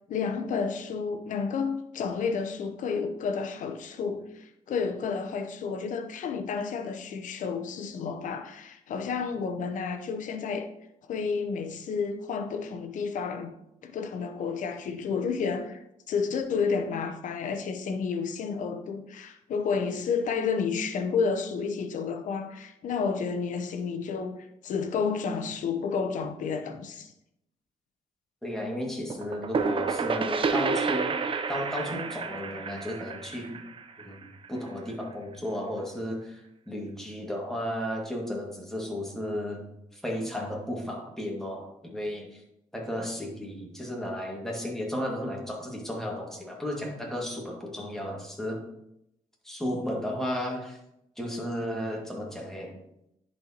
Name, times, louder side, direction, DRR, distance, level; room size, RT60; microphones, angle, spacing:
voice 1, 0.1-10.7 11.1-13.5 13.8-15.8 16.1-27.1, left 5 dB, 70° left, 0.8 m, -31 dB
voice 2, 28.4-31.1 31.5-33.6 34.0-34.2 34.5-36.4 36.7-39.6 39.9-42.4 42.7-48.6 49.4-50.8 51.2-52.8, equal, 5° left, 2.0 m, -34 dB
sound 1, 29.1-34.7, right 5 dB, 40° right, 0.6 m, -30 dB
10.5 x 4.4 x 2.9 m
cardioid pair, 80°, 13 cm